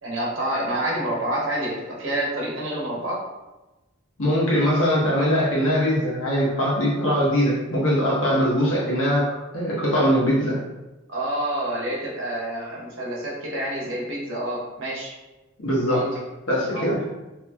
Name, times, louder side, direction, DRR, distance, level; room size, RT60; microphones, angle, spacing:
voice 1, 0.0-3.2 11.1-15.1 15.9-16.1 16.7-16.8, right 1 dB, 75° right, -5 dB, 0.9 m, -28 dB
voice 2, 4.2-10.6 15.6-16.0 16.5-17.0, equal, 85° left, -6 dB, 1.0 m, -21 dB
2.7 x 2.6 x 2.3 m, 1.1 s
head